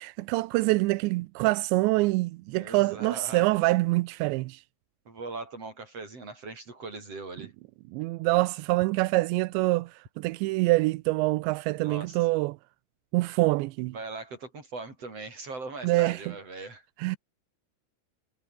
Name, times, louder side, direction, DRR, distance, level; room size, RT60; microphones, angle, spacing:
voice 1, 0.0-4.6 7.9-12.6 13.1-13.9 15.8-16.4 17.0-17.2, right 21 dB, 85° right, 2.6 m, -25 dB
voice 2, 2.6-3.4 5.1-7.5 11.8-12.2 13.9-16.8, right 3 dB, 30° right, 8.3 m, -40 dB
omnidirectional pair, 5.7 m